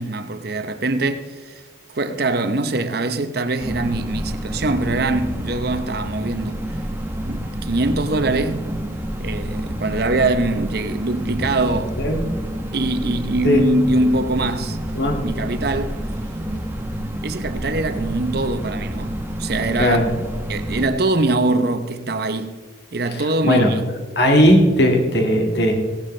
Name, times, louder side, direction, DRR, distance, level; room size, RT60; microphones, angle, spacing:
voice 1, 0.0-1.6 1.9-6.6 7.3-8.7 9.2-12.0 12.7-14.8 15.2-16.0 17.2-19.1 19.4-20.0 20.5-22.6 22.9-23.8, right 2 dB, 50° right, 0.8 m, -23 dB
sound 1, 3.6-20.9, equal, 10° right, 1.0 m, -28 dB
voice 2, 23.1-23.7 24.2-25.7, left 1 dB, 55° left, 2.0 m, -17 dB
16.5 x 11.5 x 3.3 m
head